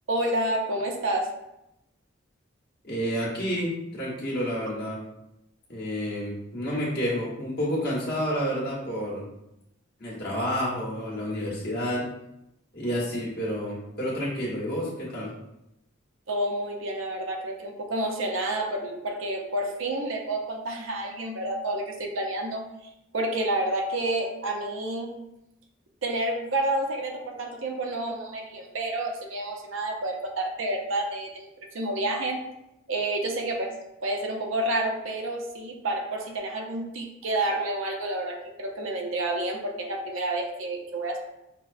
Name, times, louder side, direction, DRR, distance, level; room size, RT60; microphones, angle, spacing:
voice 1, 0.1-1.3 16.3-22.6 23.1-25.2 26.0-32.4 32.9-41.2, right 1 dB, 75° right, 2 dB, 0.6 m, -29 dB
voice 2, 2.8-5.0 5.7-9.3 10.0-12.0 12.7-15.3, equal, 50° left, -6 dB, 1.3 m, -29 dB
6.0 x 2.1 x 2.6 m, 0.86 s
head